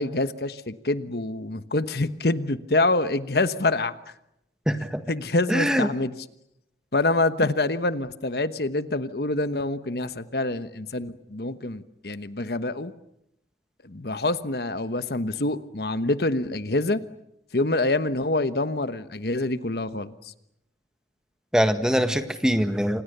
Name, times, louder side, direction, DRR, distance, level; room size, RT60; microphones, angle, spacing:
voice 1, 0.0-3.9 5.1-6.1 6.9-12.9 13.8-17.0 17.5-20.3, left 2 dB, 60° left, 12 dB, 1.2 m, -26 dB
voice 2, 4.7-5.0 5.5-5.9 21.5-23.0, equal, 5° right, 8 dB, 1.7 m, -23 dB
29.5 x 26.5 x 6.8 m, 0.83 s
head